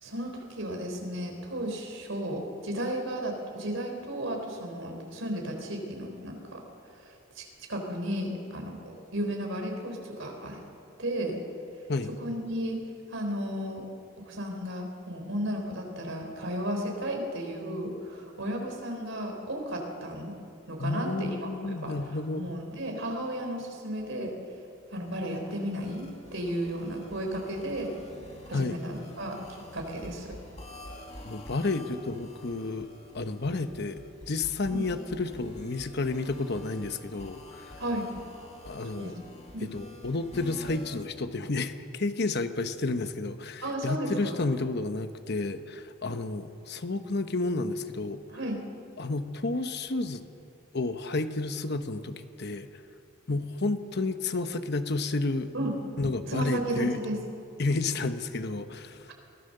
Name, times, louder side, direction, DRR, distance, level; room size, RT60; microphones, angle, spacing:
voice 1, 0.0-6.6 7.0-10.6 11.0-11.4 12.2-12.8 13.1-13.8 14.3-20.4 20.7-22.0 22.4-24.3 24.9-27.9 28.4-30.4 34.7-34.8 37.8-38.1 38.9-39.1 39.5-39.7 43.6-44.4 48.3-48.6 55.5-55.7 56.3-57.2, right 1 dB, 65° right, 2 dB, 4.2 m, -34 dB
voice 2, 20.8-22.5 28.5-28.8 31.2-32.9 33.1-34.0 34.3-37.8 38.6-39.1 39.6-48.2 49.0-50.2 50.7-52.7 53.3-55.5 56.0-57.0 57.6-59.1, left 3 dB, 55° left, 9 dB, 1.0 m, -31 dB
sound 1, 25.0-41.0, left 1 dB, 30° left, 2.5 m, -48 dB
23.0 x 17.0 x 6.7 m, 2.5 s
head